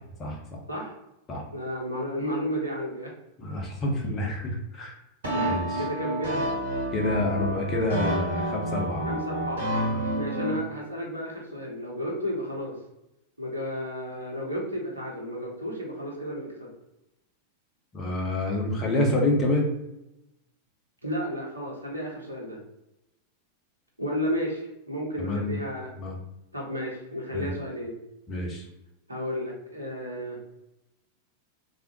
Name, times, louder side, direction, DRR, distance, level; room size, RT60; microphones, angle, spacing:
voice 1, 1.5-3.1 5.3-6.4 9.1-9.7 10.1-12.7 13.4-16.7 21.0-22.6 24.0-25.9 26.5-27.9 29.1-30.4, equal, 80° right, -2 dB, 0.9 m, -32 dB
voice 2, 3.4-4.9 5.5-5.7 6.9-9.1 9.9-10.1 17.9-19.7 25.2-25.6 26.0-26.2 27.3-27.5 28.3-28.6, left 1 dB, 25° left, 0 dB, 0.9 m, -27 dB
sound 1, 5.2-10.6, right 1 dB, 65° right, 1.1 m, -29 dB
3.5 x 2.5 x 2.9 m, 0.90 s
figure-of-eight pair, 90°, 0 cm